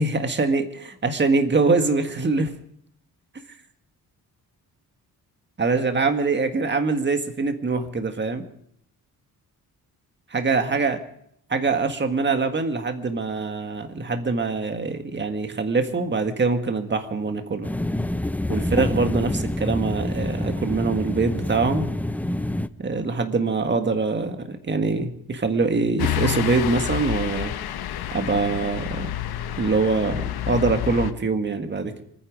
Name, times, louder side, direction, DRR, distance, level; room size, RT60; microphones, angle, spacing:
voice 1, 0.0-2.5 5.6-8.4 10.3-11.0 11.5-17.7 18.5-21.9 22.8-27.5 28.1-29.1 29.6-32.0, right 4 dB, 30° right, 7 dB, 1.7 m, -24 dB
sound 1, 17.6-22.7, left 1 dB, 5° left, 0.5 m, -27 dB
sound 2, 26.0-31.1, left 11 dB, 90° left, 1.0 m, -29 dB
26.5 x 10.0 x 5.2 m, 0.69 s
cardioid pair, 95°, 37 cm